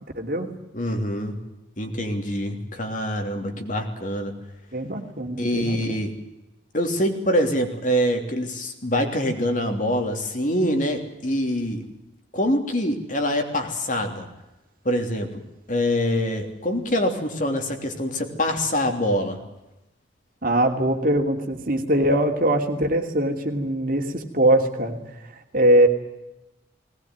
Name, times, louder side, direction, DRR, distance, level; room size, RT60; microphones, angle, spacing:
voice 1, 0.1-0.5 4.7-6.0 20.4-25.0 25.5-25.9, right 1 dB, 45° right, 4 dB, 2.7 m, -22 dB
voice 2, 0.7-1.4 1.8-4.3 5.4-6.1 6.7-11.8 12.3-14.3 14.8-15.4 15.7-19.4, equal, 40° left, 4 dB, 3.2 m, -25 dB
20.0 x 19.5 x 9.5 m, 0.96 s
head